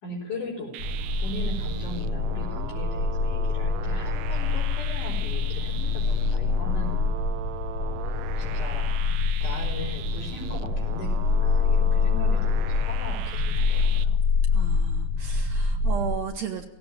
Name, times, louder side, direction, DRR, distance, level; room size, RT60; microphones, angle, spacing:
voice 1, 0.0-0.8 1.2-7.1 7.8-8.9 9.4-14.2, left 2 dB, 75° left, -6 dB, 5.6 m, -39 dB
sound 1, 0.7-14.0, right 13 dB, 90° right, 2.4 m, -39 dB
sound 2, 0.8-16.2, left 4 dB, 50° left, 3.9 m, -25 dB
voice 2, 14.5-16.7, right 7 dB, 65° right, 4 dB, 2.5 m, -34 dB
17.5 x 17.5 x 9.1 m, 0.99 s
omnidirectional pair, 3.6 m